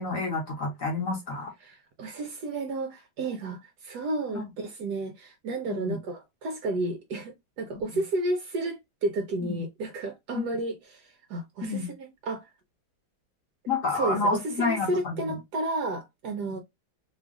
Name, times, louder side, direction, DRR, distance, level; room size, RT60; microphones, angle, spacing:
voice 1, 0.0-1.5 4.3-4.4 5.7-6.0 7.7-7.8 9.4-9.6 10.3-10.4 11.6-11.9 13.7-15.4 16.4-16.5, left 3 dB, 55° left, 1.0 m, -29 dB
voice 2, 1.6-12.5 13.9-16.6, right 2 dB, 70° right, 1.0 m, -32 dB
3.1 x 2.3 x 3.5 m
omnidirectional pair, 2.2 m